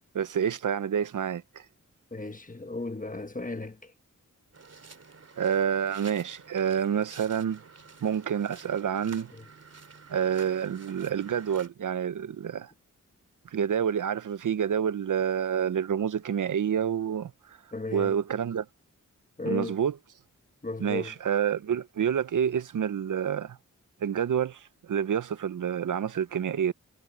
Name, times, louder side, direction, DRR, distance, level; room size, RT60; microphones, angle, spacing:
voice 1, 0.1-1.6 5.4-7.6 8.0-9.3 10.1-12.7 13.5-17.3 17.9-18.7 19.5-19.9 20.8-23.6 24.0-26.7, right 8 dB, 75° right, 0.8 m, -28 dB
voice 2, 2.1-3.9 9.3-9.5 17.7-18.2 19.4-19.8 20.6-21.1, left 2 dB, 25° left, 1.5 m, -35 dB
sound 1, 4.5-11.7, right 4 dB, 50° right, 2.9 m, -50 dB
cardioid pair, 50°, 31 cm